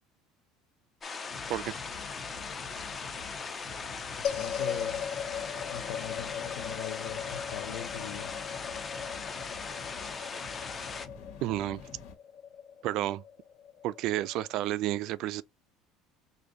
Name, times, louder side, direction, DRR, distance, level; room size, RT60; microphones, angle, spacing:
sound 1, 1.0-11.1, left 4 dB, 20° left, 0.5 m, -39 dB
sound 2, 1.3-12.1, left 4 dB, 65° left, 1.5 m, -48 dB
voice 1, 4.1-5.0 5.7-8.3, left 11 dB, 85° left, 0.7 m, -42 dB
sound 3, 4.2-14.7, left 8 dB, 50° left, 1.0 m, -39 dB
voice 2, 11.4-11.8 12.8-13.2 13.8-15.4, right 14 dB, 50° right, 0.3 m, -31 dB
4.9 x 2.6 x 3.8 m
cardioid pair, 170°, 0 cm